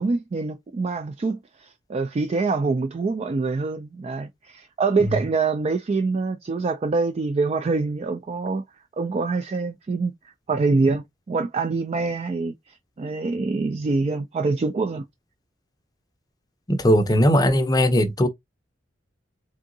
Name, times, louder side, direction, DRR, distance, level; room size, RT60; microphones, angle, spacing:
voice 1, 0.0-8.6 9.0-15.0, right 3 dB, 35° right, 0.3 m, -25 dB
voice 2, 16.7-18.3, equal, 20° left, 0.6 m, -19 dB
3.7 x 3.5 x 2.6 m
head